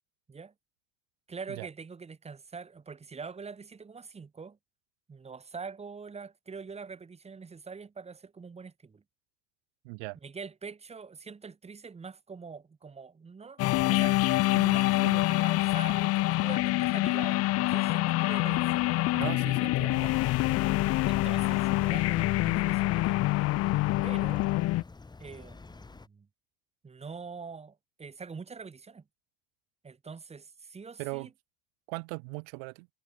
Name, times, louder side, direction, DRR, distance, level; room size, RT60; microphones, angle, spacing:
voice 1, 1.3-4.6 5.1-9.0 10.2-14.2 14.5-18.8 20.0-20.2 21.1-23.2 24.0-24.5 25.2-26.3 26.8-29.0 29.8-31.3, right 5 dB, 15° right, 4.4 m, -44 dB
voice 2, 9.9-10.2 19.2-20.0 31.0-31.3 31.9-32.9, right 33 dB, 90° right, 1.7 m, -38 dB
sound 1, 13.6-24.8, left 18 dB, 40° left, 0.5 m, -26 dB
sound 2, 18.4-26.1, left 3 dB, 10° left, 3.2 m, -49 dB
cardioid pair, 155°, 38 cm